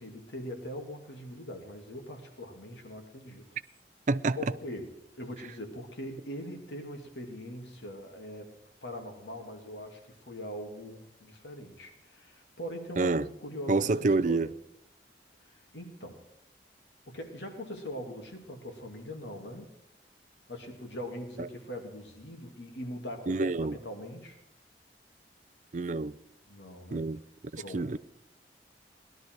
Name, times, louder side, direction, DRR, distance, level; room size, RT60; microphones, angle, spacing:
voice 1, 0.0-3.5 4.4-4.9 5.2-8.5 8.8-14.5 15.5-16.2 17.1-19.7 20.5-24.4 26.5-27.0 27.6-28.0, equal, 90° left, 2.5 m, -42 dB
voice 2, 4.1-4.5 13.0-13.3 13.7-14.5 21.4-21.5 23.3-23.8 25.7-26.2 26.9-27.2 27.5-28.0, right 3 dB, 45° right, 0.4 m, -28 dB
18.0 x 12.0 x 4.6 m
head